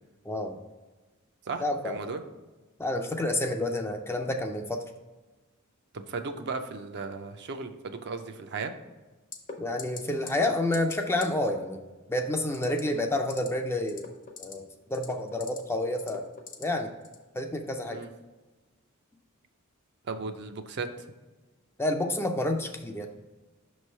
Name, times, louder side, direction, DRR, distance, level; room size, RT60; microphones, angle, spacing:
voice 1, 0.3-0.6 1.6-2.0 2.8-4.8 9.6-11.8 12.1-14.0 14.4-16.2 16.6-16.9 17.3-18.0 21.8-23.1, left 1 dB, 10° left, 4 dB, 0.4 m, -29 dB
voice 2, 1.5-2.2 5.9-8.7 17.9-18.1 20.1-20.9, right 4 dB, 55° right, 6 dB, 0.5 m, -36 dB
sound 1, 9.3-9.5 9.8-10.0 10.3-10.5 10.7-11.0 11.2-11.3 12.5-12.8 13.2-13.5 13.8-14.5 14.9-15.6 16.0-16.6 17.0-17.2, left 5 dB, 40° left, 0.8 m, -40 dB
6.0 x 3.2 x 5.4 m, 1.2 s
head